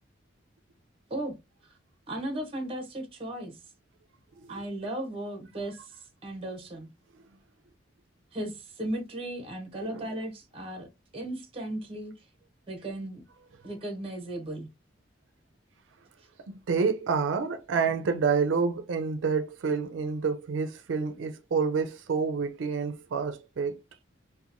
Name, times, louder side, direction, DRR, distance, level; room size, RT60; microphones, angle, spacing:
voice 1, 2.1-3.6 4.5-5.9 6.2-6.9 8.3-10.9 11.1-12.1 12.7-13.2 13.6-14.7, right 1 dB, 30° right, 0.7 m, -36 dB
voice 2, 16.5-23.8, right 5 dB, 85° right, 0.4 m, -28 dB
2.8 x 2.1 x 2.5 m
head